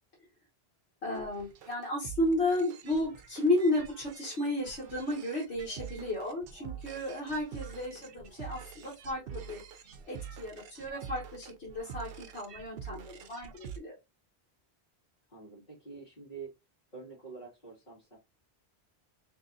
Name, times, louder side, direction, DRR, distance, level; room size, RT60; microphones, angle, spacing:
voice 1, 1.0-9.6 10.1-13.9, left 1 dB, 80° left, -4 dB, 1.5 m, -33 dB
sound 1, 1.2-13.8, right 8 dB, 65° right, 0.8 m, -46 dB
voice 2, 7.7-8.0 15.3-16.5 16.9-18.2, right 5 dB, 50° left, -9 dB, 2.1 m, -47 dB
3.8 x 3.0 x 2.6 m, 0.23 s
omnidirectional pair, 1.1 m